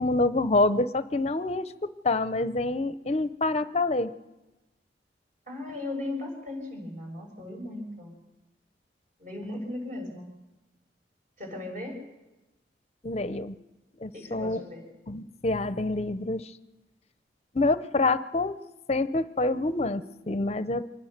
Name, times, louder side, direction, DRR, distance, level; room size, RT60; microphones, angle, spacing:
voice 1, 0.0-1.7 2.0-4.1 13.0-13.6 14.0-14.6 15.1-16.5 17.5-18.5 18.9-20.9, left 2 dB, 35° left, 13 dB, 0.6 m, -26 dB
voice 2, 5.5-8.1 9.2-10.3 11.4-12.0 14.1-14.8, left 2 dB, 45° right, 1 dB, 6.5 m, -37 dB
25.5 x 20.0 x 6.6 m, 1.0 s
head